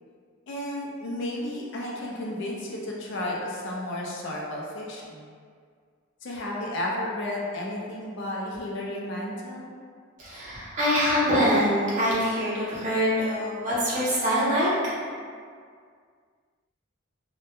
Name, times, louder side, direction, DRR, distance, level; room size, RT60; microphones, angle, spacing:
voice 1, 0.5-5.3 6.2-9.7, left 1 dB, 60° left, -3 dB, 0.4 m, -33 dB
voice 2, 10.2-14.7, equal, 35° right, -9 dB, 0.7 m, -24 dB
2.1 x 2.1 x 2.8 m, 2.1 s
head